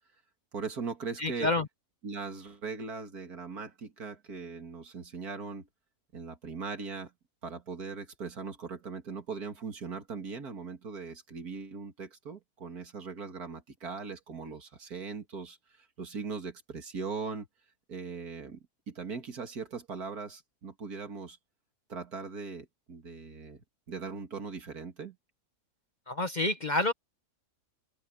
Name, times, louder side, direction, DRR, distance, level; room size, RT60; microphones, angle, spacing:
voice 1, 0.5-1.5 2.0-5.7 6.1-7.1 7.4-17.5 17.9-21.4 21.9-25.2, right 5 dB, 75° right, 2.8 m, -40 dB
voice 2, 1.2-1.7 26.1-26.9, left 2 dB, 35° left, 1.0 m, -28 dB
open air
omnidirectional pair, 1.6 m